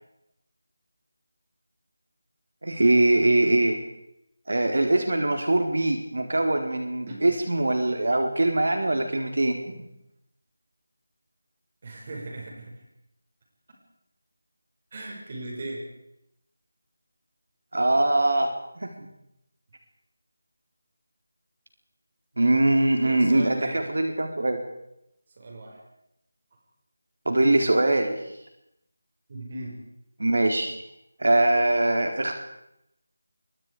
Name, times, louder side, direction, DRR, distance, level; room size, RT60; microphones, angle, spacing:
voice 1, 2.6-3.8 4.5-9.8 17.7-18.5 18.8-18.9 22.4-24.6 27.3-28.2 30.2-30.7 31.2-32.4, right 2 dB, 75° right, 4 dB, 4.2 m, -22 dB
voice 2, 11.8-12.8 14.9-15.8 22.9-24.1 25.4-25.8 29.3-29.8, right 1 dB, 30° right, 0 dB, 6.7 m, -38 dB
27.0 x 24.0 x 5.1 m, 0.80 s
figure-of-eight pair, 175°, 0 cm